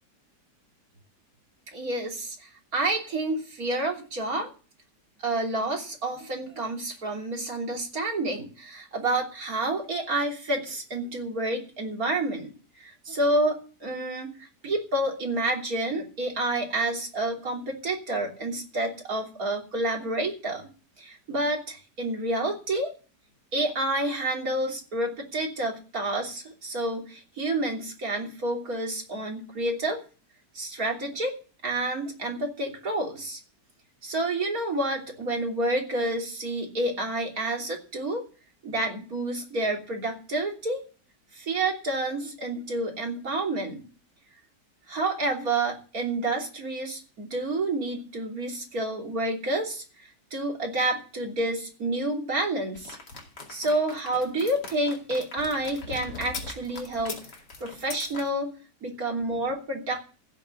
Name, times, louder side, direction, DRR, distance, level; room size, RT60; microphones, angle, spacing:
voice 1, 1.7-4.5 5.2-12.5 12.8-20.7 21.0-22.9 23.5-30.0 30.5-31.3 31.6-33.4 34.0-38.2 38.6-40.8 41.3-43.8 44.9-49.8 50.3-53.0 53.5-57.2 57.6-58.5 58.8-60.0, right 2 dB, 55° right, 1 dB, 3.6 m, -29 dB
sound 1, 52.7-58.3, left 3 dB, 85° left, 3.1 m, -40 dB
15.5 x 7.3 x 7.0 m, 0.37 s
omnidirectional pair, 1.8 m